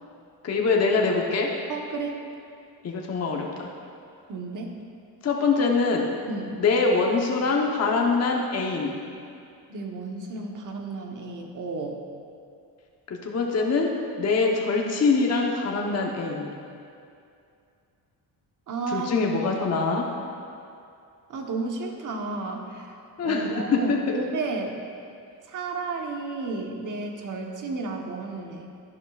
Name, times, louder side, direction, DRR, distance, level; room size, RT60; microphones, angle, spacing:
voice 1, 0.4-1.5 2.8-3.7 5.2-6.1 6.5-8.9 13.1-16.5 18.9-20.1 23.2-23.5 23.9-24.2, left 4 dB, 40° left, 0 dB, 1.0 m, -24 dB
voice 2, 1.7-2.2 4.3-4.8 6.3-6.6 9.7-12.0 18.7-19.3 21.3-22.9 23.2-24.8 25.5-28.7, right 3 dB, 50° right, 2 dB, 1.1 m, -32 dB
11.5 x 11.0 x 2.4 m, 2.5 s
cardioid pair, 125°, 39 cm